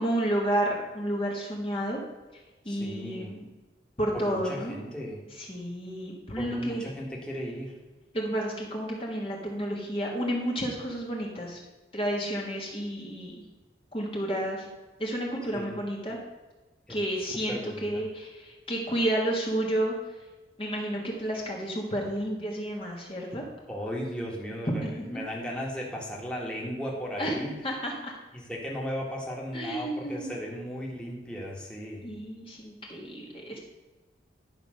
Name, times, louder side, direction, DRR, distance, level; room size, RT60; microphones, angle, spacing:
voice 1, 0.0-2.0 2.6-3.5 4.0-4.8 5.4-6.8 8.1-11.6 11.9-13.4 13.9-14.7 15.0-16.2 16.9-20.2 20.6-23.4 24.7-25.2 27.2-28.1 29.5-30.4 32.0-33.6, right 1 dB, 30° left, -2 dB, 1.5 m, -31 dB
voice 2, 2.6-3.3 4.1-5.2 6.4-7.8 15.5-15.8 16.9-17.0 17.5-17.9 23.7-27.5 28.3-32.1, equal, 5° left, -3 dB, 1.6 m, -36 dB
11.0 x 5.1 x 6.4 m, 1.2 s
head